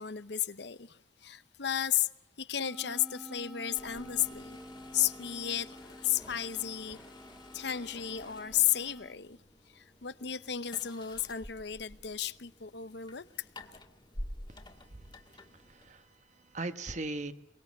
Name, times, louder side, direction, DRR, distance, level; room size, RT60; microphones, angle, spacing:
voice 1, 0.0-2.1 2.4-4.6 4.9-7.0 7.5-9.4 9.7-13.2 13.6-13.8, left 11 dB, 60° left, 0.8 m, -33 dB
sound 1, 2.6-9.1, equal, 5° right, 2.2 m, -50 dB
sound 2, 3.7-16.2, left 1 dB, 25° left, 1.9 m, -50 dB
voice 2, 14.5-17.3, right 2 dB, 40° right, 1.4 m, -41 dB
23.5 x 22.5 x 7.3 m
head